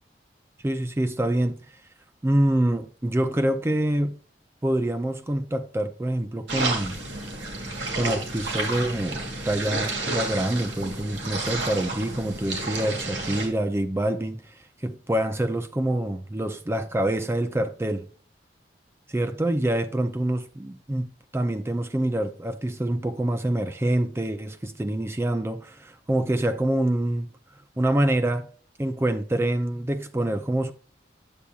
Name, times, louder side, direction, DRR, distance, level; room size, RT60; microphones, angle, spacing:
voice 1, 0.6-1.6 2.2-4.2 4.6-7.0 7.9-14.5 14.8-18.1 19.1-27.3 27.8-28.5 28.8-30.7, right 1 dB, 15° right, 0.4 m, -26 dB
sound 1, 6.5-13.5, right 2 dB, 85° right, 2.3 m, -31 dB
8.6 x 8.2 x 2.3 m
head